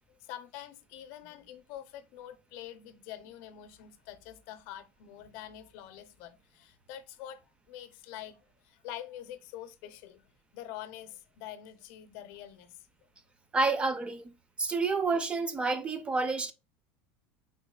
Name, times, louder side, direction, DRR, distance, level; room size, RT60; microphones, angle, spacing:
voice 1, 0.1-12.8, left 11 dB, 65° left, 0.5 m, -46 dB
voice 2, 13.5-14.3 14.6-16.5, right 3 dB, 20° right, 0.4 m, -29 dB
3.8 x 2.7 x 2.2 m
supercardioid pair, 125°, 6 cm